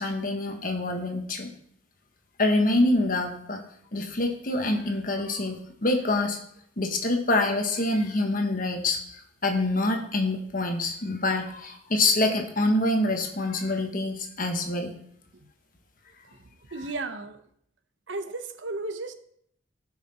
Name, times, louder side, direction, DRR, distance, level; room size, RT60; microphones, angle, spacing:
voice 1, 0.0-1.5 2.4-3.6 3.9-6.4 6.8-14.9 16.8-16.9, left 2 dB, 45° left, 1.4 m, -26 dB
voice 2, 16.7-17.4 18.1-19.1, right 3 dB, 80° right, 0.8 m, -34 dB
13.0 x 5.8 x 4.3 m
head